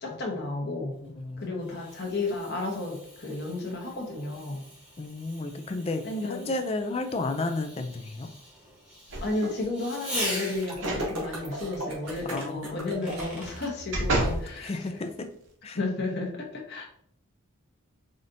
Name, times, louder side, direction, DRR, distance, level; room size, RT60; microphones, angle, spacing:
voice 1, 0.0-1.0 1.4-4.6 6.0-6.4 9.2-14.7 15.7-16.8, left 2 dB, 50° left, 0 dB, 1.0 m, -32 dB
voice 2, 1.0-1.8 5.0-8.3 12.2-13.3 14.2-15.3 15.6-15.8 16.8-16.9, left 2 dB, 25° left, 7 dB, 0.3 m, -33 dB
Fireworks, 1.0-10.9 12.4-13.6, equal, 5° right, 1.0 m, -41 dB
sound 1, 9.1-9.6 10.7-11.1 11.5-11.6 13.2-14.5 15.1-15.2, right 1 dB, 55° right, 0.8 m, -30 dB
sound 2, 10.6-13.7, right 1 dB, 80° right, 1.5 m, -35 dB
4.9 x 2.7 x 2.6 m, 0.65 s
head